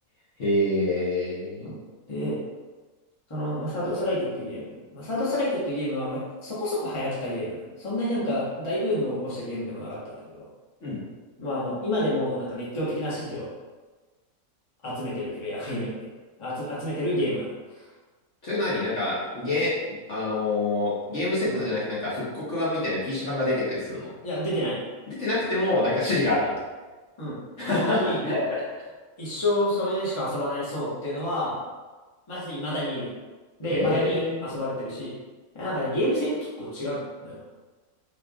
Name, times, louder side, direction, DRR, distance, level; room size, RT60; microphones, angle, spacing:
voice 1, 0.4-1.7 10.8-11.0 18.4-24.1 25.1-26.5 27.6-28.6 33.7-34.4, left 2 dB, 50° left, -8 dB, 1.4 m, -26 dB
voice 2, 2.1-2.4 3.3-10.5 11.4-13.5 14.8-16.1 16.4-17.8 21.4-21.6 24.2-24.8 27.2-27.4 27.7-28.4 29.2-31.6 32.3-33.1 33.6-35.1 35.5-37.4, left 1 dB, 20° left, -8 dB, 1.1 m, -29 dB
5.5 x 3.7 x 2.4 m, 1.3 s
omnidirectional pair, 1.7 m